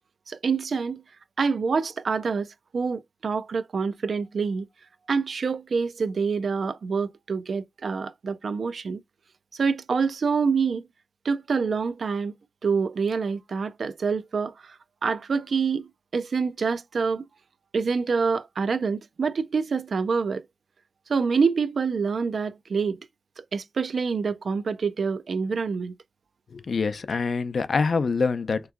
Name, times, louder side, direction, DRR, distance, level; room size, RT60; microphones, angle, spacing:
voice 1, 0.3-1.0 1.4-2.5 2.7-4.7 5.1-9.0 9.6-10.8 11.3-12.3 12.6-14.5 15.0-17.2 17.7-20.4 21.1-23.0 23.5-25.9, right 5 dB, 80° right, 0.5 m, -26 dB
voice 2, 26.5-28.6, left 4 dB, 70° left, 0.5 m, -25 dB
3.5 x 3.0 x 3.5 m
wide cardioid pair, 130°, 0 cm